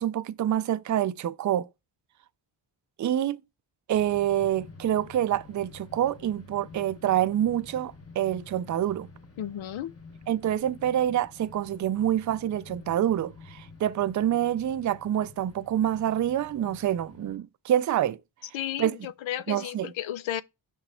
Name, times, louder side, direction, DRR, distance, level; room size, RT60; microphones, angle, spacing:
voice 1, 0.0-1.7 3.0-3.4 3.9-9.1 10.3-18.2 18.8-18.9 19.5-19.9, right 11 dB, 45° right, 0.4 m, -27 dB
sound 1, 3.9-17.4, left 3 dB, 30° left, 1.1 m, -49 dB
voice 2, 9.4-9.9 18.5-20.4, left 12 dB, 85° left, 0.6 m, -33 dB
6.1 x 3.2 x 5.4 m
cardioid pair, 95°, 46 cm